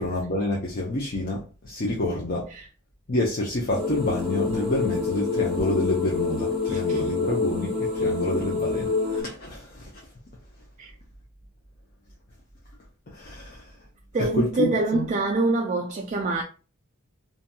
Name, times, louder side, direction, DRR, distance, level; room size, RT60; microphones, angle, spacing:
voice 1, 0.0-2.5 3.1-9.9 13.1-13.6 14.4-15.1, left 1 dB, 45° left, 0.6 m, -28 dB
sound 1, 3.7-9.2, left 4 dB, ahead, 1.3 m, -27 dB
voice 2, 6.7-7.1 10.8-10.9 14.1-16.4, right 2 dB, 35° right, 0.3 m, -25 dB
2.8 x 2.6 x 2.2 m
head